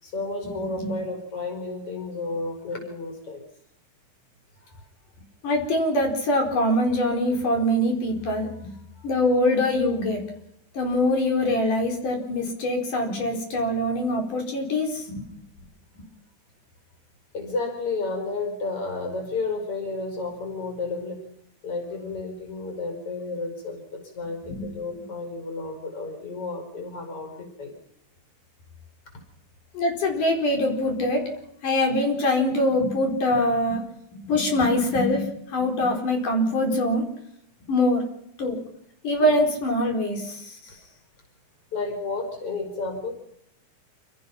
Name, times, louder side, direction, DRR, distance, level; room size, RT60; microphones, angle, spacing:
voice 1, 0.0-3.4 17.3-21.3 21.6-27.8 41.7-43.1, left 3 dB, 45° left, 4 dB, 6.2 m, -32 dB
voice 2, 5.4-8.5 9.0-10.2 10.7-15.1 24.5-24.7 29.7-31.2 31.6-33.8 34.2-37.0 37.7-38.0 38.4-38.6 39.0-40.6, left 1 dB, 85° left, 2 dB, 6.0 m, -23 dB
28.5 x 17.5 x 6.0 m, 0.75 s
omnidirectional pair, 3.6 m